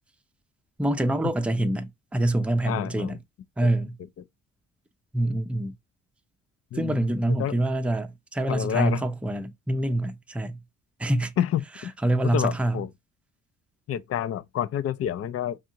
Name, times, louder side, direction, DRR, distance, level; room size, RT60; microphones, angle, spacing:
voice 1, 0.8-3.2 3.6-4.0 5.1-5.7 6.7-10.6 11.0-11.3 12.0-12.8, right 1 dB, 5° right, 0.5 m, -25 dB
voice 2, 2.7-3.2 3.6-3.7 6.7-7.0 7.3-7.6 8.5-9.0 11.4-11.9 12.2-12.9 13.9-15.6, left 10 dB, 50° left, 0.5 m, -28 dB
3.6 x 2.6 x 2.8 m
cardioid pair, 90°, 30 cm